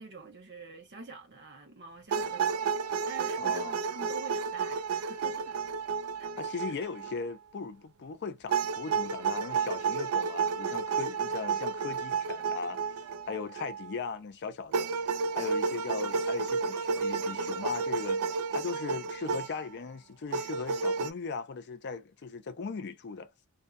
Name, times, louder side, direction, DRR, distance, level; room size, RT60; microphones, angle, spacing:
voice 1, 0.0-2.7 3.0-5.6 6.2-6.3, right 4 dB, 55° right, 1.0 m, -46 dB
sound 1, 2.1-7.2 8.5-14.0 14.7-19.6 20.3-21.1, right 5 dB, 85° right, 0.4 m, -31 dB
voice 2, 3.4-3.8 6.4-12.8 13.3-14.9 15.3-23.3, left 5 dB, 50° left, 0.5 m, -38 dB
2.6 x 2.2 x 2.5 m
head